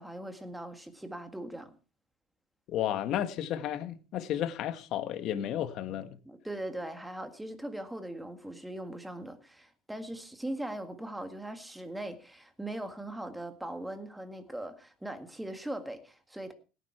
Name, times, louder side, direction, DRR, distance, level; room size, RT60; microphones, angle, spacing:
voice 1, 0.0-1.8 5.9-16.5, right 1 dB, 5° right, 1.9 m, -40 dB
voice 2, 2.7-6.2, left 11 dB, 55° left, 1.6 m, -32 dB
17.5 x 10.0 x 4.5 m
supercardioid pair, 120°, 0 cm